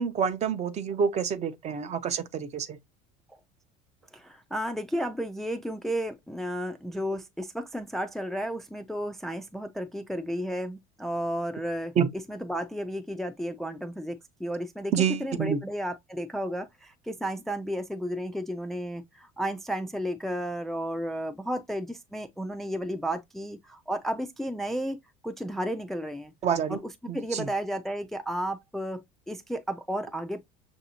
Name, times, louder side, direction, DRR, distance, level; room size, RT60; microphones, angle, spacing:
voice 1, 0.0-2.8 12.0-12.1 14.9-15.6 26.4-26.8 27.1-27.5, right 7 dB, 40° right, 0.6 m, -27 dB
voice 2, 4.1-11.9 12.3-25.0 25.2-26.3 26.7-30.4, equal, ahead, 0.4 m, -33 dB
6.0 x 2.7 x 2.7 m
supercardioid pair, 115°, 18 cm